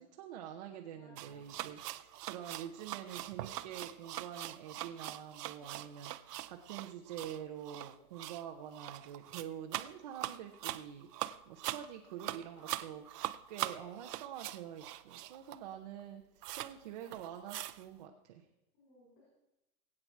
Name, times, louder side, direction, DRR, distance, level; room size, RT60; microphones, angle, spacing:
voice 1, 0.0-11.1 11.5-18.4, right 9 dB, 25° right, 2 dB, 0.6 m, -46 dB
voice 2, 0.9-1.5 5.6-5.8 12.5-12.9 18.7-19.3, left 2 dB, 30° left, -8 dB, 6.4 m, -62 dB
sound 1, 1.2-15.7 16.0-16.1 16.4-16.7 17.0-17.9, right 14 dB, 75° right, 0.7 m, -42 dB
20.5 x 8.7 x 4.5 m, 0.91 s
supercardioid pair, 170°, 48 cm